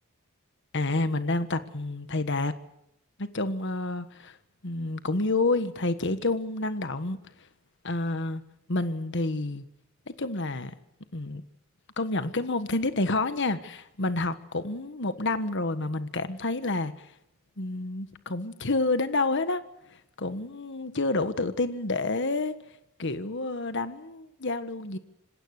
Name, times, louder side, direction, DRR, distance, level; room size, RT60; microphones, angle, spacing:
voice 1, 0.7-2.5 3.2-4.4 4.6-7.2 7.8-8.4 8.7-9.6 10.1-10.7 11.1-11.4 12.0-16.9 17.6-19.6 20.2-22.5 23.0-25.0, left 2 dB, 55° left, 1.5 m, -29 dB
26.5 x 19.5 x 6.7 m
head